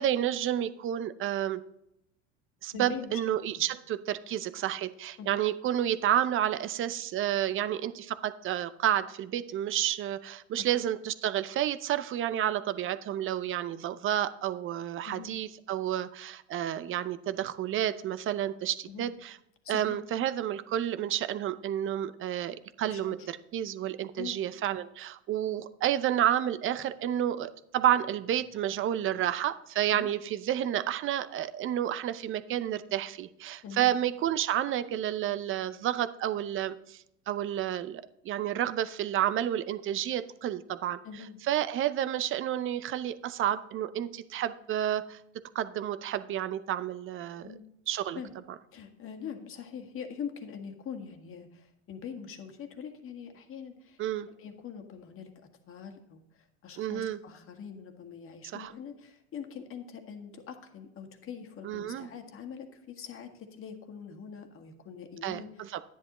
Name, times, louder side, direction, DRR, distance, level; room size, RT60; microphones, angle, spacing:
voice 1, 0.0-1.6 2.6-19.4 19.7-41.0 41.5-45.2 45.5-47.5 47.9-48.2 54.0-54.3 56.8-57.2 58.5-58.7 61.6-62.1 65.2-65.8, right 11 dB, 35° right, 14 dB, 0.6 m, -30 dB
voice 2, 2.7-3.2 5.2-5.4 10.6-10.8 15.0-15.4 18.9-19.2 19.6-20.0 22.8-23.3 24.2-24.4 29.9-30.1 33.6-34.0 41.0-41.4 47.4-47.6 48.1-48.3 48.7-54.0 54.4-55.3 55.7-65.7, left 7 dB, 35° left, 5 dB, 1.7 m, -43 dB
10.5 x 10.5 x 3.0 m, 0.79 s
hypercardioid pair, 100°, 36 cm